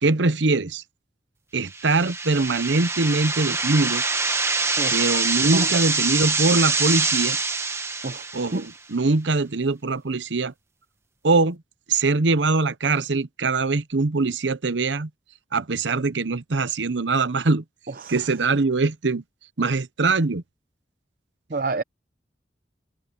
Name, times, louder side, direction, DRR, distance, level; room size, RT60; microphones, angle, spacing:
voice 1, 0.0-0.8 1.5-4.0 4.9-7.4 8.3-10.5 11.2-11.6 11.9-15.1 15.5-17.6 18.1-19.2 19.6-20.4, right 3 dB, 90° right, 0.9 m, -22 dB
sound 1, 1.7-8.7, right 4 dB, 15° right, 1.2 m, -25 dB
voice 2, 21.5-21.8, right 3 dB, 50° right, 0.6 m, -28 dB
head